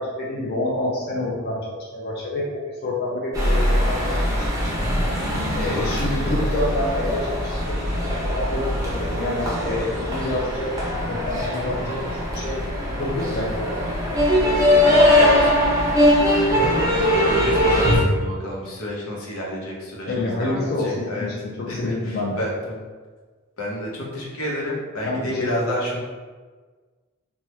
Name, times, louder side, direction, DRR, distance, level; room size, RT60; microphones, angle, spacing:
voice 1, 0.0-4.2 4.7-4.8 5.5-7.3 8.0-10.7 11.1-12.6 13.0-13.8 20.0-22.4 25.0-25.5, left 2 dB, 50° left, -4 dB, 0.4 m, -27 dB
sound 1, 3.3-18.0, equal, 15° right, 0.6 m, -21 dB
voice 2, 14.8-15.5 16.6-20.1 20.4-21.3 21.7-22.9 23.6-26.0, equal, 85° left, -3 dB, 0.8 m, -30 dB
2.8 x 2.2 x 3.1 m, 1.4 s
head